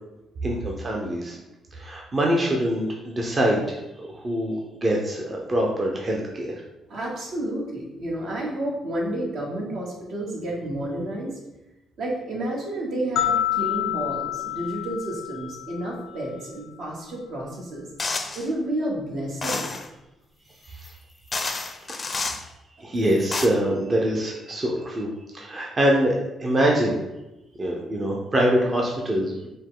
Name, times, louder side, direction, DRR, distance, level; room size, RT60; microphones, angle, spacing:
voice 1, 0.4-1.4 1.7-6.6 20.6-20.9 21.9-22.3 22.8-27.0 27.6-29.5, right 1 dB, 30° right, -1 dB, 0.6 m, -24 dB
voice 2, 6.9-11.4 12.0-17.9 18.3-19.7, right 1 dB, 70° right, -3 dB, 1.2 m, -30 dB
sound 1, 13.2-16.3, left 11 dB, 90° left, 0.8 m, -28 dB
sound 2, 18.0-18.5 19.4-19.9 20.8-20.9 21.3-22.4 23.1-23.5, left 3 dB, 35° left, 0.5 m, -29 dB
5.1 x 2.2 x 3.8 m, 0.97 s
cardioid pair, 90°, 0 cm